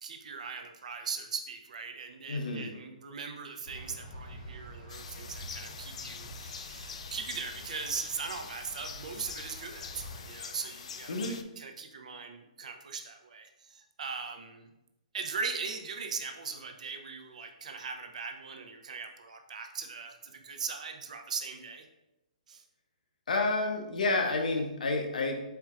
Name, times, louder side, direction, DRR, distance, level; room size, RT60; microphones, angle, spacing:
voice 1, 0.0-14.7 15.1-21.9 22.5-22.6, right 5 dB, 60° right, 5 dB, 0.6 m, -40 dB
voice 2, 2.3-2.7 11.1-11.3 23.3-25.4, left 2 dB, 75° left, 3 dB, 0.8 m, -29 dB
sound 1, 3.6-10.3, equal, 30° left, 1.0 m, -48 dB
sound 2, 4.9-11.4, left 6 dB, 50° left, 0.3 m, -45 dB
4.5 x 4.4 x 2.4 m, 0.94 s
hypercardioid pair, 170°, 4 cm